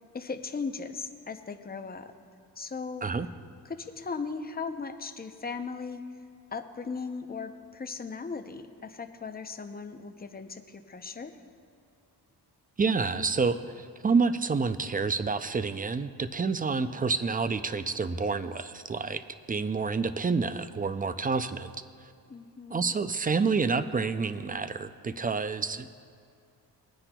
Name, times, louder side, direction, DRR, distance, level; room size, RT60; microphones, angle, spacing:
voice 1, 0.0-2.1 2.6-3.1 3.6-6.1 6.5-11.4 22.3-22.9, left 4 dB, 20° left, 8 dB, 0.6 m, -38 dB
voice 2, 12.8-19.2 19.5-21.7 22.7-25.9, right 4 dB, 20° right, 11 dB, 0.3 m, -28 dB
21.0 x 9.9 x 2.3 m, 2.4 s
cardioid pair, 100°, 42 cm